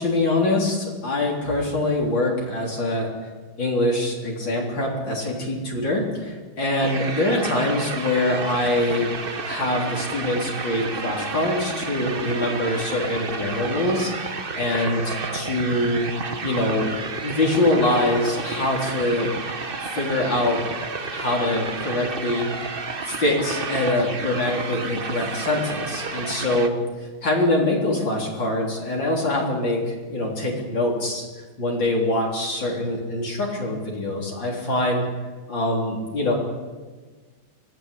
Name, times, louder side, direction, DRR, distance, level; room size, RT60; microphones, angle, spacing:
voice 1, 0.0-3.1 3.6-9.1 9.4-16.1 16.4-16.9 17.2-19.3 19.8-20.6 21.1-22.5 23.0-26.8 27.2-31.3 31.6-35.1 35.5-36.3, left 1 dB, 65° left, -2 dB, 4.4 m, -24 dB
sound 1, 6.8-26.7, right 4 dB, 30° right, 1.2 m, -31 dB
25.5 x 17.5 x 8.4 m, 1.4 s
omnidirectional pair, 2.2 m